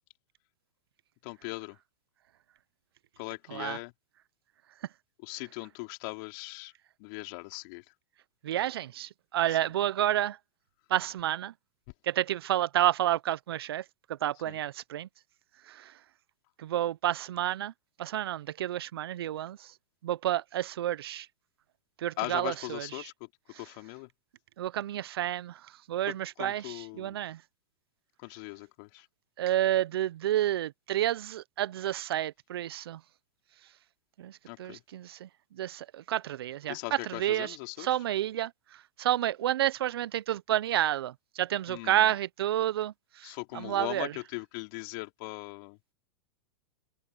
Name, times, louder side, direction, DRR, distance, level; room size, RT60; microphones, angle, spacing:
voice 1, 1.2-1.8 3.2-3.9 5.2-6.7 7.0-7.8 9.5-9.6 14.5-14.6 22.2-23.1 23.6-24.1 26.1-27.2 28.2-29.1 34.5-34.8 36.7-37.9 41.7-42.2 43.2-45.8, left 30 dB, 50° left, 4.1 m, -39 dB
voice 2, 8.4-10.4 10.9-11.5 12.1-13.8 14.2-15.1 16.6-17.7 18.0-19.6 20.0-21.2 22.0-22.9 24.6-25.5 25.9-27.4 29.4-33.0 34.2-34.3 34.6-35.3 35.6-36.8 37.2-38.5 39.0-41.1 41.4-42.9 43.5-44.1, right 12 dB, 70° right, 1.1 m, -30 dB
open air
hypercardioid pair, 105°, 13 cm